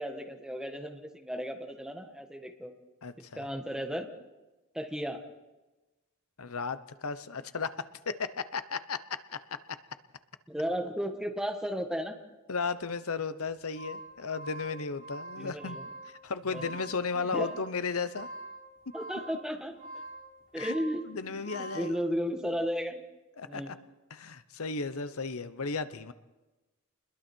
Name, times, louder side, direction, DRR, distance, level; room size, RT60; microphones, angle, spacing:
voice 1, 0.0-2.7 3.3-4.1 4.7-5.2 10.5-12.2 15.4-15.9 16.5-16.8 17.1-17.6 18.9-20.0 20.5-23.0 23.4-23.7, equal, 5° right, 4 dB, 1.7 m, -35 dB
voice 2, 3.0-3.5 6.4-9.6 12.5-15.8 16.1-18.3 20.6-20.7 21.1-22.0 23.4-23.8 24.1-26.1, left 4 dB, 70° left, 13 dB, 1.0 m, -35 dB
sound 1, 13.5-21.9, right 1 dB, 40° right, 3.7 m, -45 dB
28.5 x 21.5 x 4.6 m, 1.1 s
head